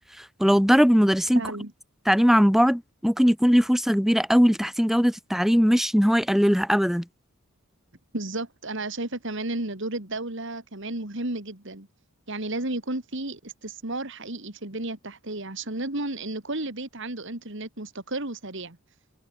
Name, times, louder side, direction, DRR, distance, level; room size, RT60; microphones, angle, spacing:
voice 1, 0.0-1.4 2.1-7.0, equal, ahead, 2.6 m, -20 dB
voice 2, 1.3-1.7 8.1-11.9 12.3-18.8, right 2 dB, 60° right, 3.1 m, -33 dB
head